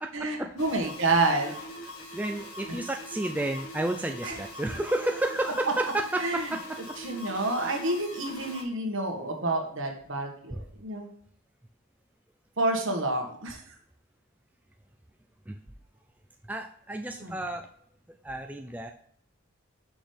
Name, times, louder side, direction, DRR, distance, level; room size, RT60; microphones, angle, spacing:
voice 1, 0.1-1.6 2.7-2.8 4.2-4.4 6.2-6.5 7.0-11.1 12.6-13.6 17.2-17.4, right 2 dB, 65° right, 3 dB, 1.5 m, -29 dB
sound 1, 0.6-8.6, left 1 dB, 85° left, 1.5 m, -42 dB
voice 2, 2.1-6.4 10.5-10.6 15.5-15.6 16.5-17.7 18.2-18.9, right 1 dB, 5° right, 3 dB, 0.3 m, -31 dB
6.1 x 6.0 x 3.3 m, 0.65 s
head